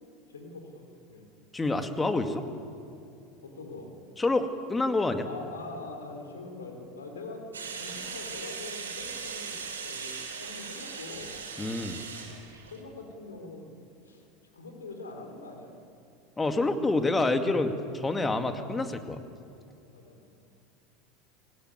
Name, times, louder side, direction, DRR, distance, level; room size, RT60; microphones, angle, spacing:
voice 1, 0.3-1.3 3.4-3.9 5.2-11.3 12.3-13.7 14.0-14.2 14.5-15.7 19.9-20.3, left 3 dB, 90° left, 4 dB, 3.9 m, -43 dB
voice 2, 1.5-2.4 4.2-5.3 11.6-12.0 16.4-19.2, left 2 dB, 15° left, 7 dB, 2.3 m, -27 dB
sound 1, 7.5-12.8, right 5 dB, 90° right, 3.7 m, -39 dB
21.5 x 18.5 x 9.6 m, 2.5 s
hypercardioid pair, 85°, 0 cm